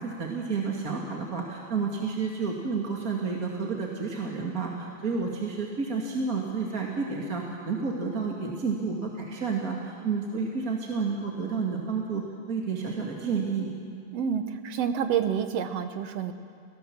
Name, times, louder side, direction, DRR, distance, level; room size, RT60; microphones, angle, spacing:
voice 1, 0.0-13.7, right 5 dB, 30° right, -1 dB, 2.1 m, -30 dB
voice 2, 14.1-16.3, right 8 dB, 65° right, 8 dB, 1.8 m, -28 dB
30.0 x 18.0 x 7.4 m, 2.3 s
omnidirectional pair, 3.7 m